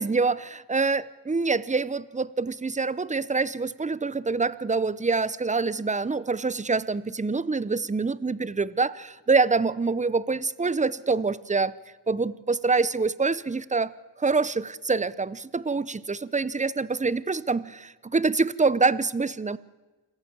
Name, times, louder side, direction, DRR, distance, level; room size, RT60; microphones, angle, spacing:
voice 1, 0.0-11.7 12.1-13.9 14.2-19.6, right 4 dB, 15° right, 19 dB, 0.7 m, -25 dB
27.0 x 14.5 x 8.7 m, 1.2 s
wide cardioid pair, 95°, 47 cm